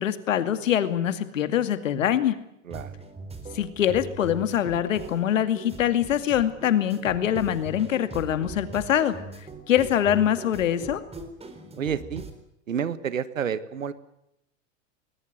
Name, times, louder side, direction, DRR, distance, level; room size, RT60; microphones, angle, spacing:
voice 1, 0.0-2.4 3.5-9.2 9.7-11.0, left 10 dB, 80° left, 11 dB, 2.4 m, -24 dB
sound 1, 2.7-12.3, right 3 dB, 15° right, 4.1 m, -41 dB
voice 2, 11.8-12.2 12.7-13.9, right 8 dB, 90° right, 15 dB, 1.6 m, -29 dB
20.5 x 20.5 x 9.5 m, 0.81 s
hypercardioid pair, 100°, 38 cm